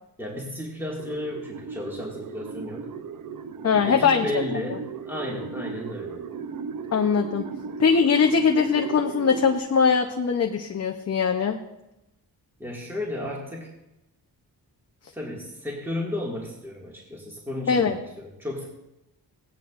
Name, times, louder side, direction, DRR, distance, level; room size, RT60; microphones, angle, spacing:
voice 1, 0.2-2.9 3.7-6.3 12.6-13.7 15.1-18.7, left 1 dB, 5° right, -3 dB, 2.0 m, -33 dB
sound 1, 1.0-9.6, right 6 dB, 55° right, 0.7 m, -36 dB
voice 2, 3.6-4.3 6.9-7.5 7.8-11.6 17.7-18.0, left 6 dB, 40° left, 4 dB, 0.7 m, -21 dB
16.0 x 10.0 x 2.5 m, 0.93 s
cardioid pair, 90°, 38 cm